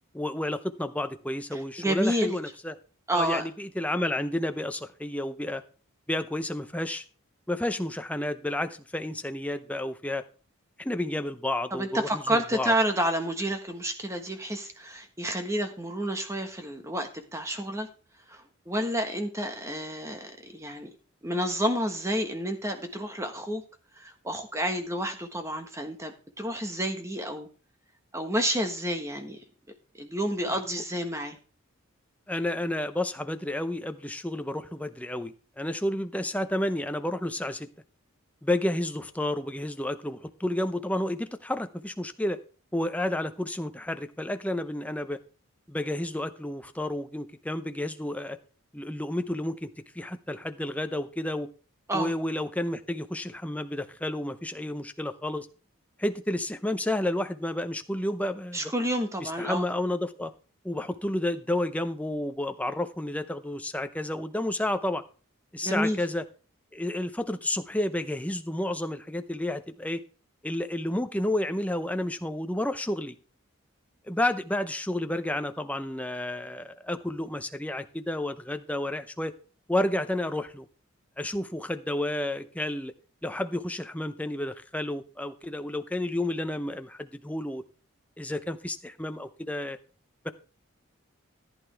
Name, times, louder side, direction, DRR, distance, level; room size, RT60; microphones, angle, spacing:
voice 1, 0.1-2.7 3.1-5.6 6.1-7.0 7.5-10.2 10.8-12.7 32.3-37.7 38.4-42.4 42.7-45.2 45.7-48.4 48.7-49.7 49.9-51.5 51.9-55.5 56.0-58.7 59.2-60.3 60.6-65.0 65.5-66.2 66.7-70.0 70.4-73.2 74.1-79.3 79.7-80.7 81.2-82.9 83.2-87.6 88.2-89.8 90.2-90.3, left 1 dB, 5° left, 8 dB, 0.6 m, -31 dB
voice 2, 1.5-2.3 3.1-3.5 11.7-17.9 18.3-20.9 21.2-23.6 24.0-27.5 28.1-29.4 30.0-31.4 51.9-52.1 58.5-59.7 65.6-66.0, equal, 15° right, 5 dB, 1.3 m, -30 dB
14.5 x 8.9 x 3.4 m, 0.38 s
head